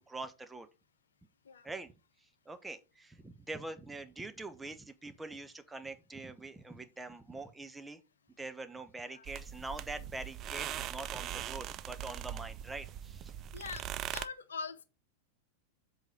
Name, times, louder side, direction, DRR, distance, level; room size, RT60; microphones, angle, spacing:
voice 1, 0.1-0.7 1.6-1.9 2.5-8.0 8.4-13.3, right 2 dB, 10° right, 1.0 m, -44 dB
sound 1, 9.2-14.3, right 11 dB, 35° right, 0.5 m, -41 dB
voice 2, 13.5-13.8 14.1-14.8, left 5 dB, 65° left, 0.8 m, -42 dB
7.9 x 4.1 x 5.1 m
figure-of-eight pair, 90°, 0 cm